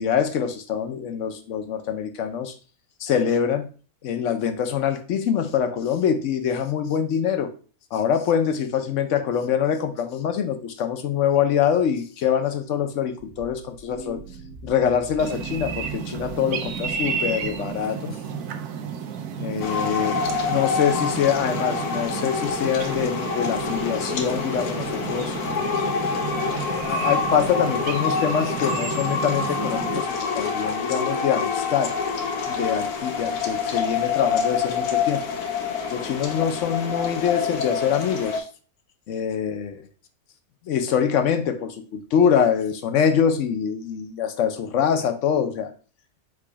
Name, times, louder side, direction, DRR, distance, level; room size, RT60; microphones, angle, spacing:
voice 1, 0.0-2.5 3.0-3.7 4.0-7.5 7.9-14.2 14.6-18.2 19.4-20.2 20.5-25.3 26.7-31.9 32.4-35.2 35.9-38.4 39.1-39.8 40.7-45.7, left 8 dB, 60° left, 8 dB, 0.9 m, -24 dB
sound 1, 13.2-17.9, right 3 dB, 55° right, 1.2 m, -42 dB
sound 2, 15.2-30.0, right 7 dB, 80° right, 1.1 m, -32 dB
sound 3, 19.6-38.4, left 5 dB, 90° left, 1.2 m, -27 dB
4.8 x 2.3 x 4.7 m, 0.38 s
omnidirectional pair, 1.6 m